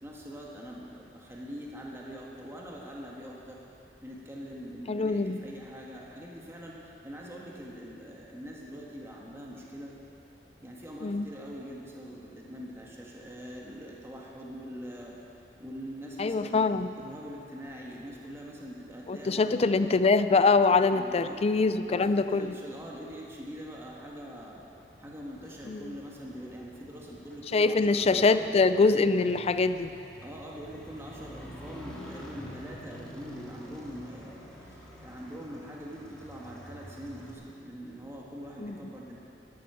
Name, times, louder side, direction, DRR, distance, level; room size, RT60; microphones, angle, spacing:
voice 1, 0.0-3.6 4.0-9.9 10.6-15.1 15.6-16.7 17.0-19.5 19.8-19.9 20.9-21.5 21.8-24.6 25.0-28.5 30.2-39.2, equal, 15° right, -3 dB, 1.5 m, -43 dB
voice 2, 4.9-5.4 11.0-11.3 16.2-16.9 19.1-22.5 25.7-25.9 27.5-29.9 38.6-38.8, left 4 dB, 35° left, 11 dB, 0.4 m, -24 dB
Motorcycle, 24.8-37.3, left 1 dB, 5° left, 2.1 m, -48 dB
12.5 x 11.5 x 5.7 m, 2.7 s
head